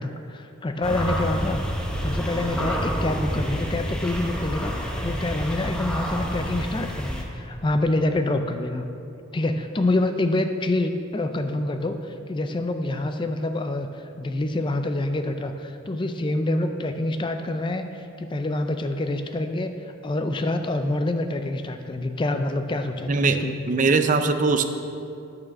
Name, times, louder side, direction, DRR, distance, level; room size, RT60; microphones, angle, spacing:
voice 1, 0.0-1.6 2.0-4.7 5.0-8.9 9.3-19.8 20.0-23.6, left 2 dB, 25° left, 7 dB, 0.4 m, -26 dB
sound 1, 0.8-7.2, equal, 5° left, 0.9 m, -28 dB
voice 2, 23.1-23.4 23.7-24.6, right 4 dB, 40° right, 8 dB, 0.4 m, -21 dB
8.7 x 6.4 x 6.1 m, 2.6 s
head